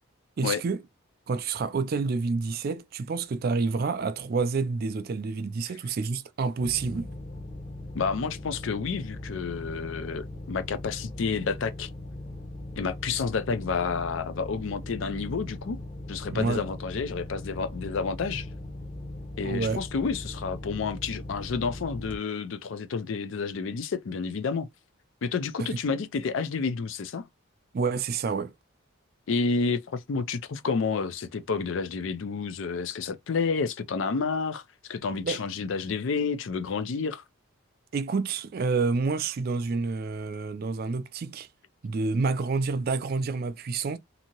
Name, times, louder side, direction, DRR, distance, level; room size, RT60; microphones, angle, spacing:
voice 1, 0.4-0.8 1.3-7.1 16.3-16.6 19.4-19.8 27.7-28.5 35.2-35.4 37.9-41.5 41.8-44.0, right 4 dB, 45° right, 0.3 m, -28 dB
sound 1, 6.6-22.2, left 1 dB, 25° left, 0.8 m, -39 dB
voice 2, 7.9-11.9 12.8-15.8 16.1-18.5 19.4-24.7 25.2-27.3 29.3-34.6 34.9-37.2, left 5 dB, 60° left, 0.4 m, -30 dB
2.7 x 2.7 x 2.8 m
head